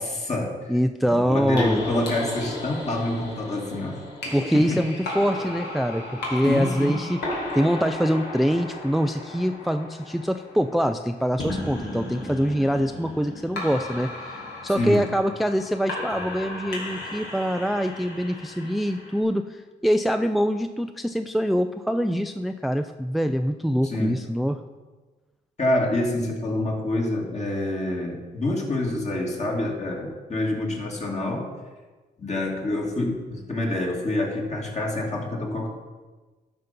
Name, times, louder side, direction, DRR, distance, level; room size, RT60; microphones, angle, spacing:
voice 1, 0.0-0.6 1.1-4.0 4.5-4.8 6.4-6.9 14.7-15.0 23.8-24.2 25.6-31.5 32.2-35.7, left 1 dB, 40° left, -1 dB, 2.7 m, -27 dB
voice 2, 0.7-1.8 4.3-7.2 7.5-24.6, equal, ahead, 8 dB, 0.4 m, -24 dB
sound 1, 1.5-19.2, left 2 dB, 75° left, 2.9 m, -35 dB
12.0 x 5.5 x 5.3 m, 1.3 s
cardioid pair, 70°, 18 cm